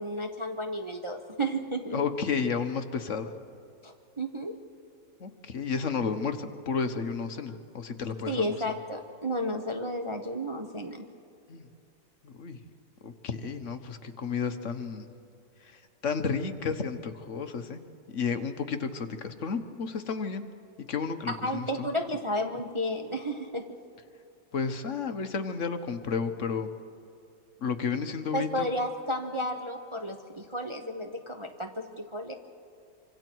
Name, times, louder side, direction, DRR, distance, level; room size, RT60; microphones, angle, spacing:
voice 1, 0.0-2.0 3.8-4.6 8.3-11.0 21.3-23.7 28.3-32.3, equal, 25° right, 3 dB, 0.8 m, -32 dB
voice 2, 1.9-3.3 5.2-8.6 11.5-11.7 12.2-12.6 13.0-15.1 15.6-17.8 18.1-20.5 20.9-21.9 24.5-26.7 27.6-28.7, left 5 dB, 50° left, 8 dB, 1.3 m, -32 dB
26.0 x 25.0 x 4.6 m, 2.6 s
omnidirectional pair, 1.8 m